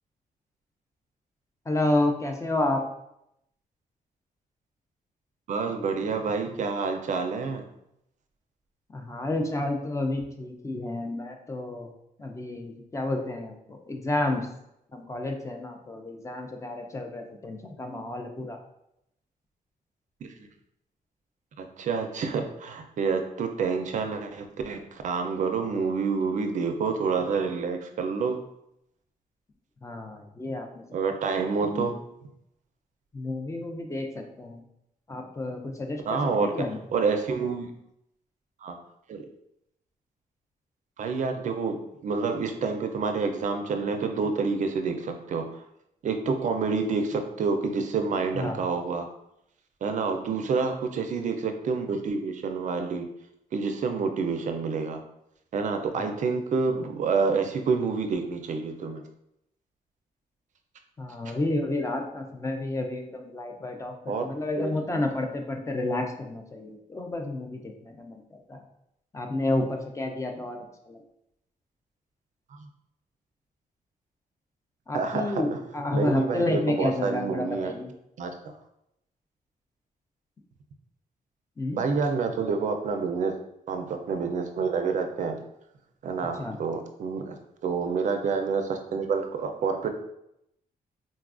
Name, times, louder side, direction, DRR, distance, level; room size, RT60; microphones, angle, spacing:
voice 1, 1.7-2.8 8.9-11.9 12.2-14.5 14.9-18.6 29.8-30.8 31.6-31.9 33.1-34.6 35.1-36.8 48.3-48.6 55.9-56.1 61.0-68.6 69.1-71.0 74.9-77.9 81.6-81.8 86.4-86.6, left 2 dB, 20° left, 3 dB, 0.3 m, -30 dB
voice 2, 5.5-7.6 20.2-20.5 21.6-28.4 30.9-32.0 36.1-36.5 36.9-37.7 38.6-38.8 39.1-39.3 41.0-41.8 42.0-45.6 46.0-49.1 49.8-53.0 53.5-55.0 55.5-59.0 64.1-64.3 64.6-65.0 72.5-72.7 74.9-75.4 75.9-77.7 78.2-78.6 81.7-83.3 83.7-85.3 86.0-87.3 87.6-89.9, right 5 dB, 55° right, 5 dB, 0.4 m, -28 dB
4.0 x 2.3 x 2.4 m, 0.80 s
wide cardioid pair, 140°, 15 cm